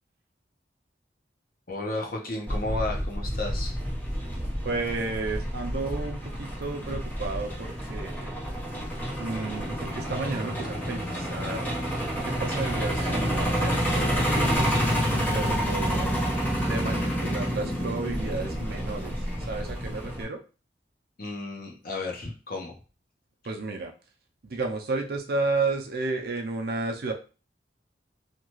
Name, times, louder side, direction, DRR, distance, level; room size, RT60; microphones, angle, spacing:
voice 1, 1.7-3.8 21.2-22.7, left 2 dB, 55° left, 0 dB, 0.8 m, -33 dB
Truck, 2.5-20.2, equal, 10° left, 0.9 m, -29 dB
voice 2, 4.6-8.3 9.2-11.8 12.2-16.2 16.6-19.1 19.5-20.4 23.4-23.9 24.4-27.1, right 3 dB, 60° right, 3 dB, 0.5 m, -32 dB
2.8 x 2.3 x 3.0 m, 0.35 s
head